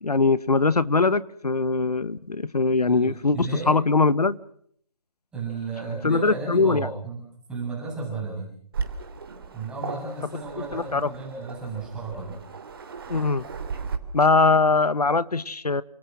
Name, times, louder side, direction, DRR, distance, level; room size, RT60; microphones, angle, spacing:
voice 1, 0.0-4.4 6.0-6.9 10.7-11.0 13.1-13.4 14.1-15.8, left 3 dB, 75° left, 17 dB, 1.3 m, -21 dB
voice 2, 2.9-3.8 5.3-7.2 7.5-8.5 9.5-12.4, right 3 dB, 5° right, -4 dB, 7.0 m, -33 dB
Waves surf, 8.7-14.0, right 5 dB, 35° right, 3.2 m, -36 dB
29.5 x 26.5 x 6.2 m, 0.65 s
figure-of-eight pair, 155°, 20 cm